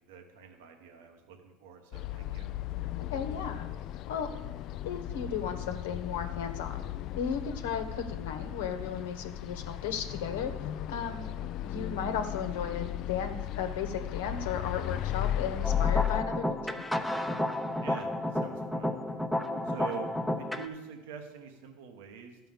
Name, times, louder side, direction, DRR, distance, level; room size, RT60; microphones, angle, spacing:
voice 1, 0.0-2.5 11.3-11.5 17.8-18.9 19.6-20.1 20.3-22.4, right 7 dB, 85° right, 4 dB, 1.1 m, -45 dB
sound 1, 1.9-16.2, left 12 dB, 50° left, 0.3 m, -35 dB
voice 2, 3.1-3.7 4.1-4.3 4.8-6.8 7.1-10.5 10.9-11.3 11.6-16.8 19.4-19.7, left 7 dB, 90° left, 7 dB, 1.2 m, -35 dB
sound 2, 15.6-20.7, left 1 dB, ahead, 0.7 m, -32 dB
12.5 x 5.7 x 7.2 m, 1.2 s
supercardioid pair, 125°, 0 cm